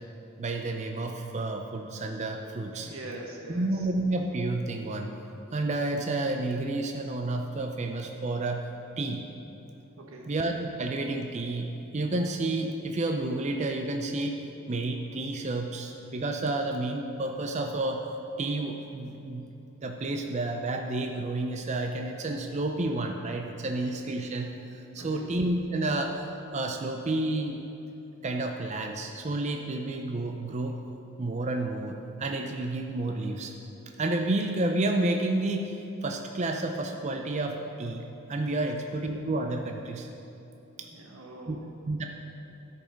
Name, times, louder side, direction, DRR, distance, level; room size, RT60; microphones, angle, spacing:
voice 1, 0.4-2.9 3.5-5.1 5.5-8.7 9.0-9.3 10.3-18.1 18.4-19.5 19.8-26.3 26.5-27.6 28.2-30.8 31.2-33.5 34.0-40.1 40.8-40.9 41.5-42.0, right 2 dB, 35° right, 3 dB, 0.5 m, -30 dB
voice 2, 2.7-3.9 10.0-10.3 24.9-25.3 38.6-38.9 40.9-41.6, right 1 dB, 90° right, -1 dB, 1.5 m, -43 dB
12.5 x 5.4 x 5.1 m, 3.0 s
head